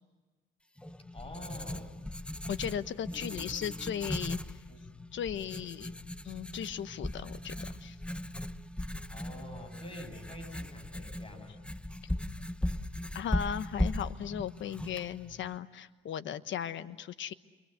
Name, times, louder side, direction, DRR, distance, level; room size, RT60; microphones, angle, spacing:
Writing, 0.8-15.6, left 1 dB, 5° left, 1.0 m, -38 dB
voice 1, 1.1-2.0 3.2-3.5 4.7-4.9 9.1-11.6, left 1 dB, 30° left, 5 dB, 8.0 m, -47 dB
voice 2, 2.5-4.4 5.1-6.0 6.2-7.5 7.8-8.0 13.1-17.3, left 9 dB, 70° left, 11 dB, 1.2 m, -37 dB
28.5 x 24.0 x 8.1 m, 1.3 s
cardioid pair, 90°, 20 cm